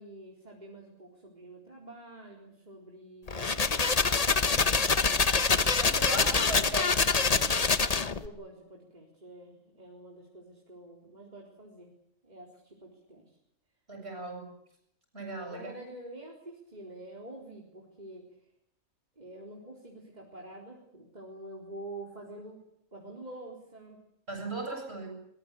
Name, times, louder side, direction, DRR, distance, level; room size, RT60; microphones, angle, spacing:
voice 1, 0.0-5.2 5.9-6.2 6.5-6.6 8.2-11.9 12.2-13.3 15.5-18.2 19.2-22.6 22.9-24.0, right 1 dB, 30° right, -1 dB, 4.2 m, -47 dB
sound 1, 3.3-8.3, left 4 dB, 30° left, 1.0 m, -25 dB
voice 2, 5.8-7.5 13.9-14.5 15.1-15.7 24.3-25.1, right 2 dB, 50° right, 4 dB, 7.7 m, -38 dB
23.0 x 21.5 x 8.3 m, 0.74 s
omnidirectional pair, 1.4 m